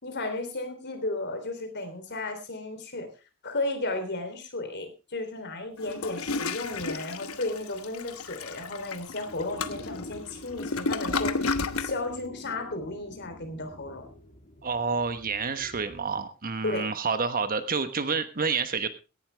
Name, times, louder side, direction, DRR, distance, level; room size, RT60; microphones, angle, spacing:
voice 1, 0.0-3.1 3.4-11.3 11.8-14.1 16.6-16.9, left 2 dB, 55° left, 6 dB, 3.4 m, -34 dB
Toilet flush, 5.8-12.0, left 4 dB, 80° left, 1.0 m, -32 dB
sound 1, 9.3-16.2, left 1 dB, 35° left, 1.9 m, -47 dB
voice 2, 14.6-18.9, right 5 dB, 40° right, 10 dB, 1.2 m, -29 dB
17.0 x 11.5 x 3.4 m, 0.30 s
head